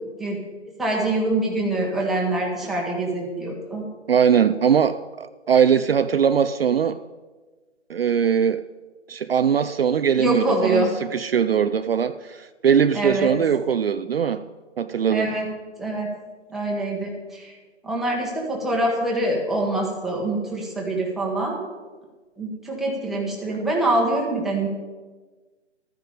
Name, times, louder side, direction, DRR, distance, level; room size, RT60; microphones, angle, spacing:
voice 1, 0.8-3.9 10.2-10.9 12.9-13.3 15.1-15.5 15.8-16.1 16.5-17.5 17.8-21.6 22.4-24.7, right 1 dB, ahead, -3 dB, 1.1 m, -25 dB
voice 2, 4.1-7.0 7.9-8.6 9.1-14.4 14.8-15.3, right 7 dB, 55° right, 11 dB, 0.5 m, -21 dB
13.5 x 9.5 x 5.1 m, 1.3 s
figure-of-eight pair, 145°, 37 cm